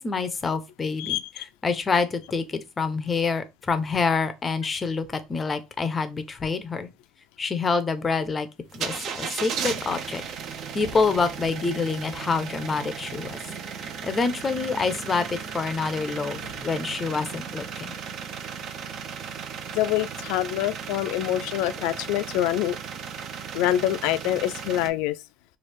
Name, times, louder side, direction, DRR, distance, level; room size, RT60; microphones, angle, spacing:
voice 1, 0.0-6.9 7.4-8.5 8.7-10.2 10.7-13.4 13.8-17.9, left 4 dB, 25° left, 0.5 m, -27 dB
voice 2, 1.0-1.5 19.7-22.8 23.5-25.2, left 13 dB, 85° left, 0.3 m, -25 dB
sound 1, 8.7-24.9, right 7 dB, 50° right, 0.5 m, -36 dB
3.2 x 2.4 x 3.2 m
cardioid pair, 130°, 0 cm